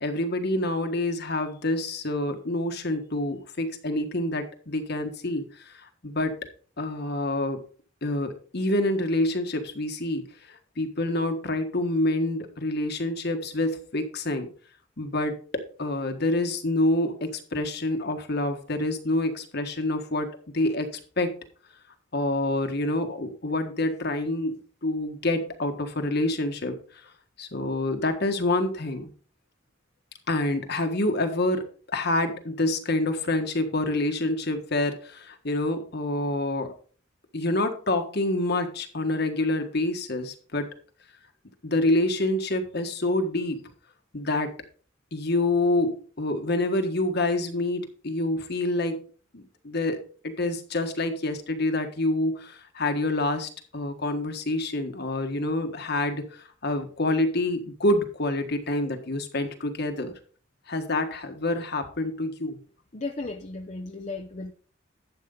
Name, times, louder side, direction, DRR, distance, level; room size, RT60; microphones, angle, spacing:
voice 1, 0.0-6.4 6.8-7.6 8.0-14.5 15.0-20.3 20.5-20.9 21.2-21.3 22.1-26.8 27.4-29.1 30.3-36.7 37.3-40.7 41.6-43.7 44.1-44.5 45.1-49.0 49.3-60.1 60.7-62.6, left 2 dB, 55° left, 7 dB, 1.6 m, -27 dB
voice 2, 62.9-64.5, left 3 dB, 40° left, 3 dB, 0.8 m, -35 dB
12.0 x 8.2 x 3.9 m, 0.42 s
head